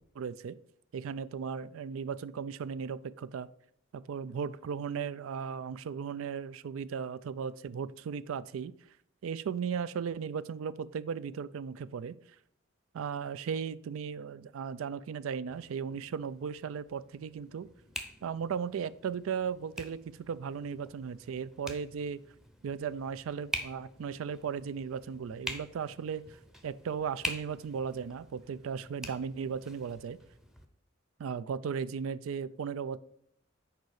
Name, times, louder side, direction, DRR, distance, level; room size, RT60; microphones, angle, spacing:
voice 1, 0.2-0.6 0.9-3.5 3.9-8.7 9.2-12.2 12.9-17.7 18.2-22.2 22.6-26.2 26.6-30.2 31.2-33.0, right 6 dB, 90° right, 17 dB, 0.4 m, -36 dB
sound 1, 15.5-30.7, equal, ahead, 0.6 m, -45 dB
6.6 x 4.8 x 4.8 m, 0.71 s
head